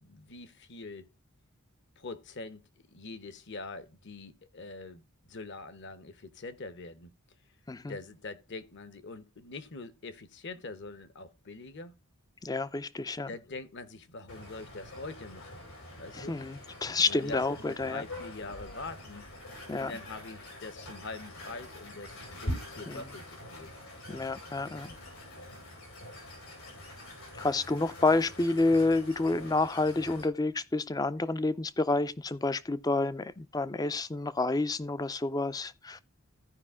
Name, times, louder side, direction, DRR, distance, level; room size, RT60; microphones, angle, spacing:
voice 1, 0.0-1.1 2.0-7.1 7.9-11.9 13.3-15.6 16.0-16.6 17.1-19.3 19.8-23.7, left 3 dB, 55° left, 1.0 m, -44 dB
voice 2, 12.4-13.3 16.2-18.0 19.7-19.9 22.9-23.0 24.1-24.9 27.4-36.0, left 3 dB, 15° left, 0.4 m, -29 dB
sound 1, 14.3-30.2, left 1 dB, 85° left, 5.4 m, -44 dB
15.0 x 5.2 x 3.6 m
head